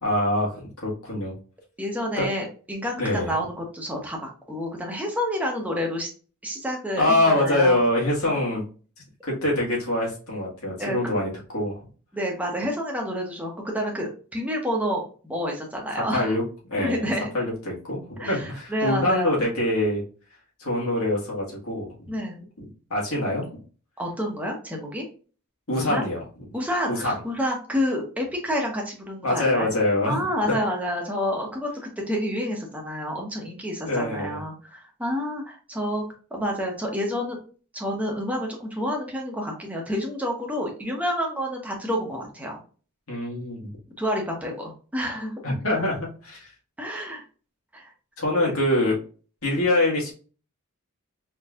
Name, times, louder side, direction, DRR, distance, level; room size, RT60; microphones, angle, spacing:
voice 1, 0.0-1.3 2.2-2.3 3.0-3.3 7.0-8.6 9.2-11.8 15.9-16.4 16.7-17.0 17.3-20.0 20.6-22.1 22.6-23.5 25.7-26.2 26.9-27.2 29.2-30.3 33.8-34.4 43.1-43.7 45.4-46.5 48.2-48.9 49.4-50.1, left 1 dB, 85° left, -3 dB, 1.8 m, -24 dB
voice 2, 1.8-6.1 6.4-7.8 10.8-11.1 12.1-16.4 16.8-17.3 18.2-19.3 22.1-22.4 24.0-25.0 25.7-26.0 26.5-29.7 30.1-36.0 36.3-37.4 37.7-42.6 44.0-45.3 46.8-47.2 47.7-47.9, equal, 5° right, 0 dB, 1.0 m, -29 dB
4.3 x 3.1 x 2.5 m, 0.38 s
head